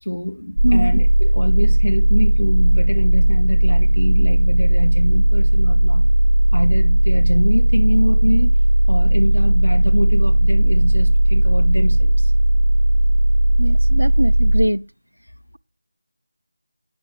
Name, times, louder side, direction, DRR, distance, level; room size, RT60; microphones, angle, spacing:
voice 1, 0.0-6.1 6.5-8.5 8.9-12.3, equal, 80° left, 2.1 m, -24 dB
sound 1, 0.6-14.7, right 1 dB, 65° right, 1.0 m, -16 dB
voice 2, 13.6-14.8, equal, 90° right, 0.4 m, -21 dB
10.0 x 6.9 x 4.9 m
figure-of-eight pair, 165°, 0 cm